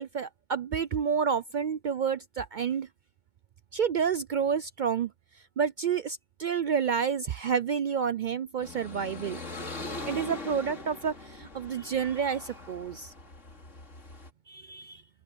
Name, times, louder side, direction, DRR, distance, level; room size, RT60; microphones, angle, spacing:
voice 1, 0.0-2.9 3.7-5.1 5.6-9.4 10.1-13.1 14.5-15.0, right 7 dB, 75° right, 0.4 m, -29 dB
sound 1, 8.6-14.3, left 2 dB, 60° left, 3.4 m, -41 dB
open air
omnidirectional pair, 1.4 m